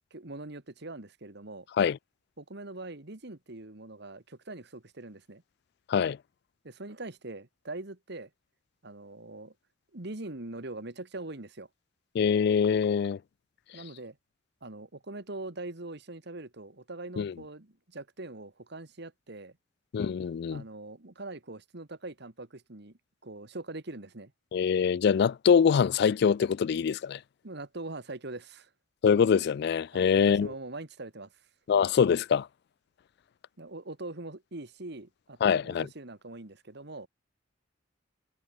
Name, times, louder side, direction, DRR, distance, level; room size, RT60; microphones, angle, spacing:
voice 1, 0.1-1.7 2.4-5.4 6.6-8.3 8.8-9.5 9.9-11.7 13.7-14.2 14.6-19.6 20.5-24.3 27.4-28.7 29.9-31.3 33.6-37.1, right 2 dB, 65° right, 2.0 m, -42 dB
voice 2, 12.1-13.2 17.2-17.3 19.9-20.6 24.5-27.2 29.0-30.5 31.7-32.5 35.4-35.9, left 7 dB, 60° left, 0.3 m, -24 dB
head